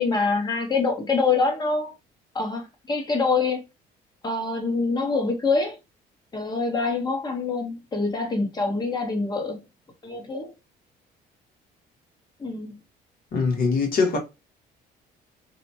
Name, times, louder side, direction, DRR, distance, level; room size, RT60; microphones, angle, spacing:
voice 1, 0.0-1.9 2.3-3.6 4.2-5.8 6.3-9.6 10.0-10.5 12.4-12.8, left 4 dB, 25° left, 0.9 m, -25 dB
voice 2, 13.3-14.2, left 4 dB, 60° left, 1.2 m, -22 dB
2.9 x 2.1 x 2.7 m
cardioid pair, 110°, 17 cm